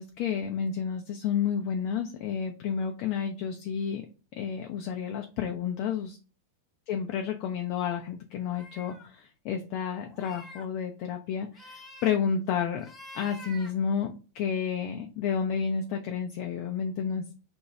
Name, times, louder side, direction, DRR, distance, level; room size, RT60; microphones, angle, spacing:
voice 1, 0.0-4.1 4.4-6.2 6.9-12.8 13.1-17.2, left 7 dB, 45° left, 4 dB, 0.4 m, -31 dB
sound 1, 8.4-9.1 10.1-10.7 11.5-12.2 12.8-13.7, left 1 dB, 10° left, 0.7 m, -47 dB
2.8 x 2.2 x 3.0 m, 0.35 s
figure-of-eight pair, 90°, 0 cm